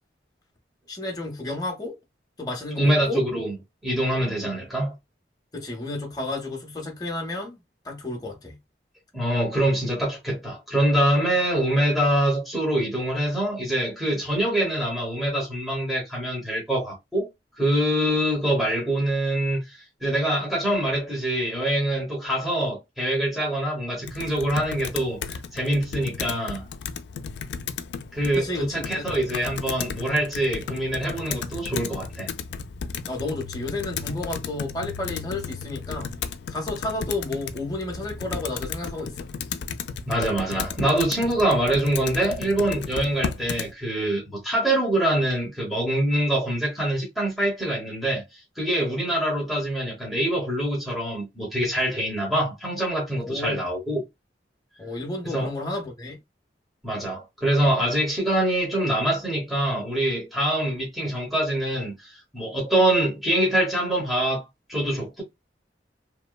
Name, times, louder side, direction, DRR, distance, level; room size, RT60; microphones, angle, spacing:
voice 1, 0.9-2.0 2.4-3.2 4.4-4.6 5.5-7.6 7.8-8.6 28.3-29.0 33.1-36.1 36.5-39.3 53.2-53.7 54.8-56.2, left 2 dB, 20° left, 0.7 m, -32 dB
voice 2, 2.8-3.6 3.8-4.9 9.1-17.3 17.6-26.7 28.1-32.3 40.1-54.0 55.2-55.5 56.8-65.2, right 1 dB, ahead, 0.9 m, -24 dB
Computer keyboard, 24.0-43.7, left 6 dB, 75° left, 0.3 m, -34 dB
2.9 x 2.1 x 2.2 m
head